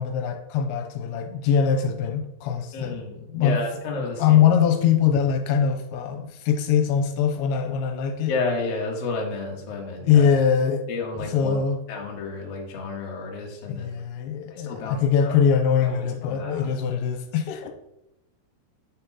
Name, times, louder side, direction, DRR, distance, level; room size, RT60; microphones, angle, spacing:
voice 1, 0.0-3.0 3.3-3.6 4.2-8.3 10.0-10.9 11.3-11.8 13.7-17.7, left 7 dB, 85° left, 5 dB, 3.0 m, -22 dB
voice 2, 2.7-4.4 8.3-10.2 10.9-11.6 11.9-13.9 14.5-15.4 15.8-16.7, left 3 dB, 65° left, -1 dB, 1.5 m, -31 dB
9.3 x 4.5 x 4.1 m, 0.84 s
omnidirectional pair, 5.3 m